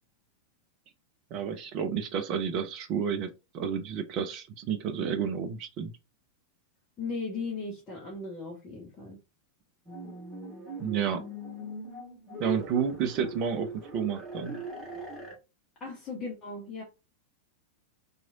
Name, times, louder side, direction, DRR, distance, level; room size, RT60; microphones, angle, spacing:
voice 1, 1.3-5.9 10.8-11.2 12.4-14.6, right 7 dB, 40° right, 0.4 m, -31 dB
voice 2, 7.0-9.2 15.8-16.8, left 4 dB, 25° left, 0.8 m, -37 dB
sound 1, 9.9-15.4, right 1 dB, 15° right, 1.1 m, -40 dB
2.9 x 2.4 x 2.7 m
figure-of-eight pair, 90°, 0 cm